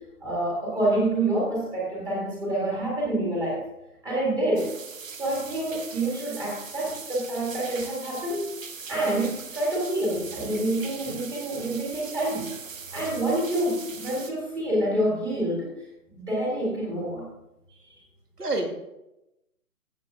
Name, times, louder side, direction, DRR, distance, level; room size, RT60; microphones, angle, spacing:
voice 1, 0.2-3.6 4.0-4.7 5.2-8.5 8.9-12.5 12.9-15.7 16.1-17.3, right 1 dB, 5° right, -5 dB, 1.8 m, -27 dB
sound 1, 4.6-14.3, right 5 dB, 55° right, 1.2 m, -40 dB
voice 2, 17.7-18.1 18.4-18.7, right 2 dB, 85° right, 3 dB, 2.3 m, -30 dB
14.5 x 7.3 x 3.6 m, 0.91 s
figure-of-eight pair, 150°, 46 cm